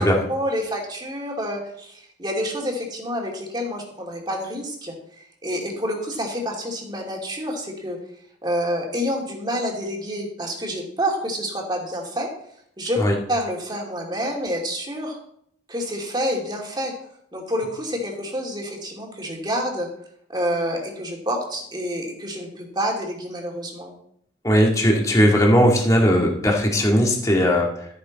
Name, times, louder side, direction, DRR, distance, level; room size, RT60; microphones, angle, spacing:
voice 1, 0.3-8.0 8.4-12.3 12.8-15.2 15.7-16.9 17.3-19.9 20.3-23.9, equal, 20° right, 0 dB, 2.6 m, -28 dB
voice 2, 24.4-27.9, equal, 15° left, 0 dB, 2.0 m, -18 dB
13.5 x 9.7 x 4.1 m, 0.69 s
head